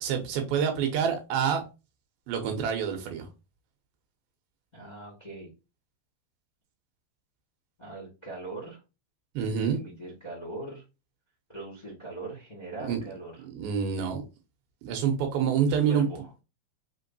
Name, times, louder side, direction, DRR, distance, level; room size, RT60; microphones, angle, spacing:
voice 1, 0.0-1.6 2.3-3.3 9.4-9.8 12.8-13.0 13.5-14.2 14.8-16.1, right 7 dB, 80° right, 2.7 m, -27 dB
voice 2, 4.7-5.5 7.8-8.8 9.7-10.8 11.5-13.4 15.7-16.3, right 2 dB, 20° left, 1.1 m, -41 dB
6.1 x 3.0 x 2.7 m
omnidirectional pair, 4.4 m